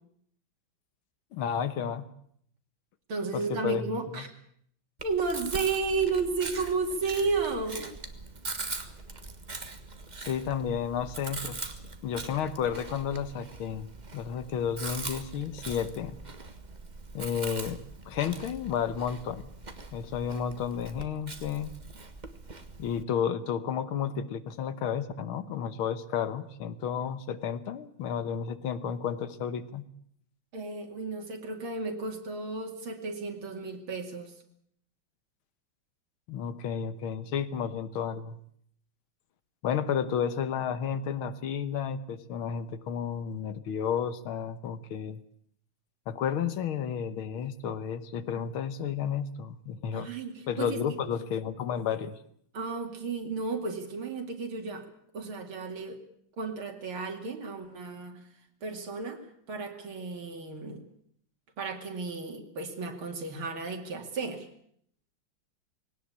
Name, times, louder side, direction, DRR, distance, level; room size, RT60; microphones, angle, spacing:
voice 1, 1.3-2.1 3.3-4.3 10.2-16.2 17.1-19.4 19.9-21.7 22.8-29.8 36.3-38.4 39.6-45.2 46.1-50.1 50.5-52.2, left 8 dB, 85° left, 13 dB, 2.0 m, -32 dB
voice 2, 3.1-4.3 5.0-7.9 30.5-34.3 49.9-50.8 52.5-54.9 55.1-56.0 56.4-58.2 58.6-60.8 61.6-64.5, right 4 dB, 85° right, 2 dB, 3.3 m, -33 dB
Chewing mastication, 5.0-23.0, right 3 dB, 25° right, 1.5 m, -42 dB
20.5 x 18.0 x 8.6 m, 0.67 s
omnidirectional pair, 2.2 m